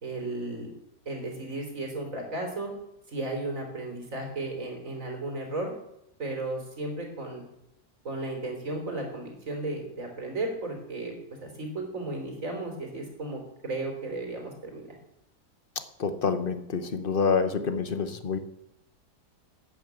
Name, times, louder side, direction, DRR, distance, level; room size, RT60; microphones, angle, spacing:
voice 1, 0.0-0.7 1.1-2.7 3.1-5.7 6.2-7.4 8.0-11.1 11.4-15.0, right 2 dB, 50° right, 2 dB, 3.7 m, -34 dB
voice 2, 16.0-18.4, left 5 dB, 40° left, 10 dB, 1.0 m, -27 dB
12.0 x 9.2 x 8.0 m, 0.83 s
omnidirectional pair, 1.7 m